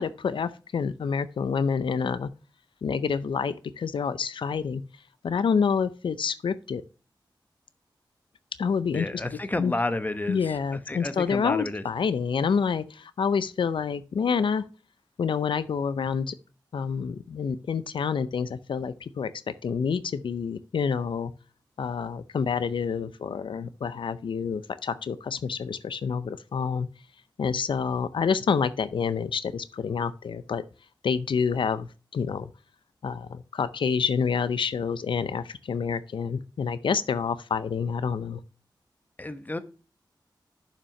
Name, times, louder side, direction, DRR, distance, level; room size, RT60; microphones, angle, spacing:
voice 1, 0.0-2.3 2.8-4.8 5.2-6.8 8.6-9.2 9.6-9.7 10.3-14.6 15.2-16.4 16.7-21.3 21.8-26.9 27.4-30.6 31.0-32.5 33.0-38.4, left 6 dB, 85° left, 0.5 m, -28 dB
voice 2, 8.9-11.8 39.2-39.6, left 2 dB, 20° left, 0.9 m, -31 dB
7.0 x 5.9 x 5.8 m
wide cardioid pair, 70°, 8 cm